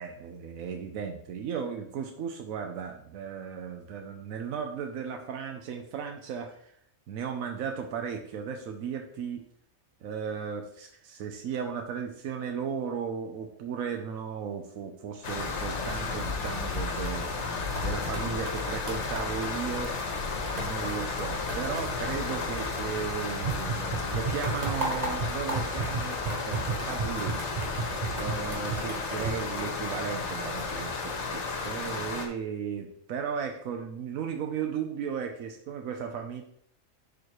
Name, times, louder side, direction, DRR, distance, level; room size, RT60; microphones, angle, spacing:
voice 1, 0.0-6.7 7.1-9.4 10.0-17.3 17.8-20.0 20.5-27.4 28.1-36.4, right 7 dB, 85° right, 5 dB, 1.1 m, -35 dB
sound 1, 15.2-32.3, left 4 dB, 60° left, 1.3 m, -33 dB
sound 2, 16.9-23.2 23.5-30.7 31.2-31.5, right 1 dB, 30° right, 1.7 m, -41 dB
sound 3, 23.4-24.8 25.1-28.8 29.2-29.4, right 5 dB, 70° right, 0.4 m, -33 dB
10.5 x 4.8 x 3.1 m, 0.68 s
omnidirectional pair, 1.4 m